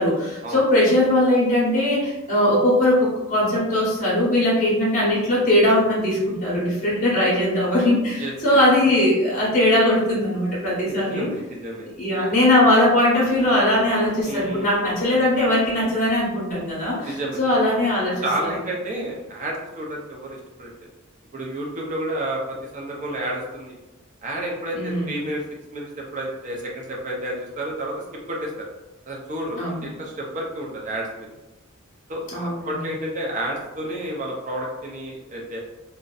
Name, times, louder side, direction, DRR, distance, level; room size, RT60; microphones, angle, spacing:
voice 1, 0.0-11.3 12.0-18.2 24.7-25.1 29.6-29.8 32.3-32.7, left 1 dB, 35° left, -6 dB, 0.8 m, -20 dB
voice 2, 8.2-8.6 11.1-11.9 14.2-14.7 17.0-17.4 18.2-20.7 21.3-23.8 24.2-25.4 25.7-28.7 29.1-31.3 32.1-35.6, right 1 dB, 35° right, -1 dB, 0.5 m, -30 dB
2.6 x 2.1 x 2.3 m, 1.0 s
head